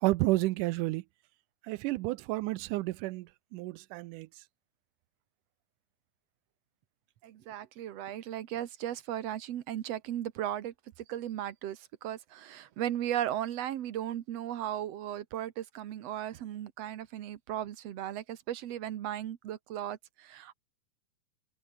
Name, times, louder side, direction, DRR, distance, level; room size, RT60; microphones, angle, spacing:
voice 1, 0.0-1.0 1.7-4.3, right 19 dB, 80° right, 2.1 m, -31 dB
voice 2, 7.2-20.5, right 11 dB, 60° right, 2.0 m, -36 dB
omnidirectional pair, 3.7 m